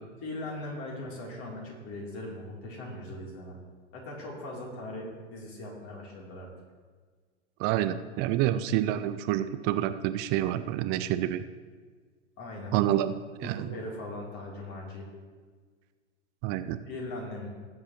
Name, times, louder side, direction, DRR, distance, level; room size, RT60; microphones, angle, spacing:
voice 1, 0.2-3.6 3.9-6.5 12.4-12.9 13.4-15.1 16.8-17.5, left 1 dB, 35° left, -2 dB, 3.3 m, -39 dB
voice 2, 7.6-11.4 12.7-13.1 13.4-13.7 16.4-16.8, right 12 dB, 30° right, 12 dB, 0.4 m, -28 dB
19.0 x 7.5 x 3.1 m, 1.5 s
hypercardioid pair, 100°, 36 cm